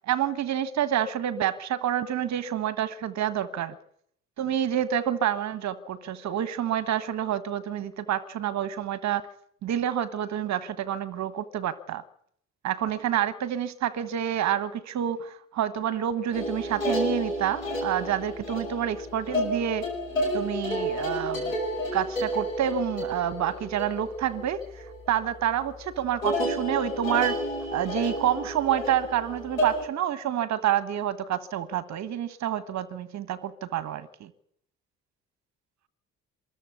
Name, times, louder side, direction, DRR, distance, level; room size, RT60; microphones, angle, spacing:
voice 1, 0.1-3.8 4.4-9.3 9.6-12.0 12.6-19.8 20.3-21.6 21.9-27.4 27.7-34.3, right 10 dB, 45° right, 1.3 m, -28 dB
sound 1, 16.3-25.1 25.4-25.8 26.2-29.8, equal, 85° left, 4.9 m, -31 dB
23.5 x 14.0 x 8.1 m
figure-of-eight pair, 50°, 39 cm